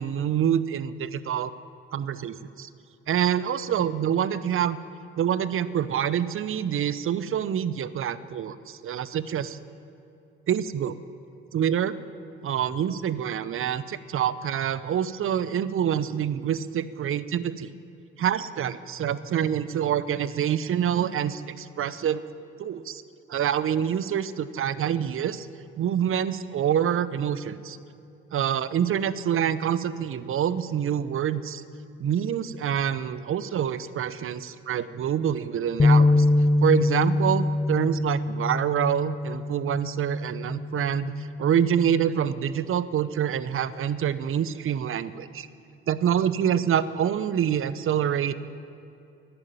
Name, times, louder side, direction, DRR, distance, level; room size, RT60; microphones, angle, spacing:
voice 1, 0.0-1.5 1.9-2.7 3.1-4.8 5.2-9.6 10.5-10.9 11.5-12.0 12.4-17.7 18.2-22.2 22.6-23.0 23.3-25.5 25.8-27.8 28.3-31.6 32.0-36.3 36.6-45.5 45.9-48.3, right 9 dB, 45° right, 15 dB, 0.8 m, -26 dB
sound 1, 35.8-42.0, left 2 dB, 15° left, 0.6 m, -24 dB
13.5 x 11.5 x 9.1 m, 2.7 s
hypercardioid pair, 55°, 30 cm